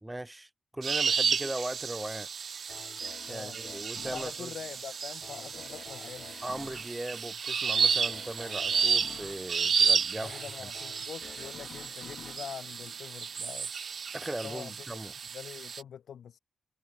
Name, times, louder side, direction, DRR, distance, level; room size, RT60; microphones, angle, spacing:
voice 1, 0.0-2.3 3.3-4.5 6.4-10.4 14.1-15.1, right 1 dB, 10° right, 1.2 m, -38 dB
sound 1, 0.8-15.8, right 6 dB, 50° right, 1.0 m, -32 dB
sound 2, 2.7-13.6 14.1-14.2, left 7 dB, 60° left, 1.4 m, -50 dB
voice 2, 4.0-6.3 10.2-13.8 14.4-14.7 15.3-16.4, left 8 dB, 85° left, 0.9 m, -44 dB
wide cardioid pair, 160°, 0 cm